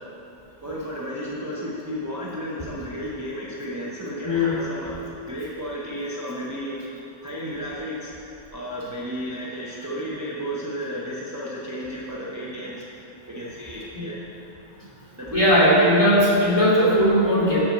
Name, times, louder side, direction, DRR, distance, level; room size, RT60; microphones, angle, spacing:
voice 1, 0.6-6.7 7.2-8.2 8.5-12.8 13.3-14.2 15.2-15.7, equal, 20° right, -7 dB, 0.9 m, -33 dB
voice 2, 4.2-4.6 13.9-14.1 15.3-17.6, equal, 25° left, -7 dB, 2.4 m, -18 dB
7.2 x 6.6 x 7.3 m, 2.9 s
omnidirectional pair, 1.0 m